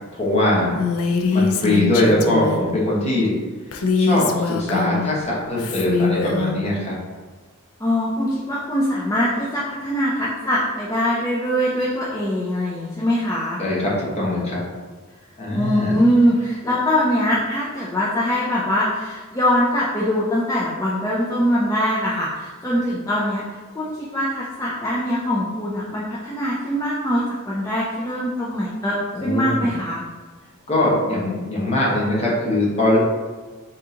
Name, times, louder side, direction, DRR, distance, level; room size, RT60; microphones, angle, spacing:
voice 1, 0.1-0.8 1.3-3.3 3.9-7.0 13.6-14.6 15.4-16.0 29.1-29.8 30.7-33.0, left 1 dB, 30° left, -5 dB, 1.0 m, -21 dB
Female speech woman speaking, 0.8-2.7 3.7-5.1 5.6-6.5, left 4 dB, 85° left, 0.4 m, -22 dB
voice 2, 7.8-13.6 15.5-23.4 23.7-30.0, equal, 15° left, -6 dB, 0.4 m, -22 dB
3.7 x 2.8 x 3.7 m, 1.4 s
head